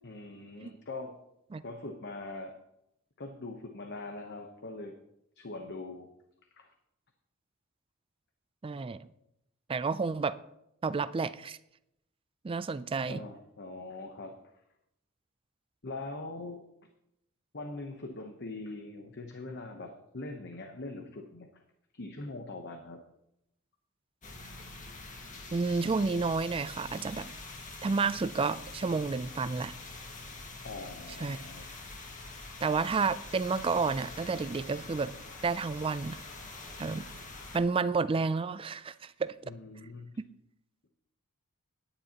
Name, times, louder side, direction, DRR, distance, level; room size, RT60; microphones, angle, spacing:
voice 1, 0.0-1.2 1.6-2.5 3.2-5.0 5.4-6.1 6.6-6.7 13.1-14.5 15.8-16.6 17.5-21.6 21.9-23.0 30.6-31.6 39.5-40.1, left 2 dB, 55° left, 1.0 m, -42 dB
voice 2, 8.6-9.0 9.7-10.4 10.8-11.6 12.4-13.2 25.5-27.3 27.8-29.8 31.2-31.4 32.6-35.1 35.4-36.2 36.8-37.0 37.5-39.3, right 4 dB, 25° right, 0.3 m, -30 dB
sound 1, 24.2-37.6, left 3 dB, 40° left, 1.8 m, -45 dB
17.5 x 10.0 x 2.9 m
head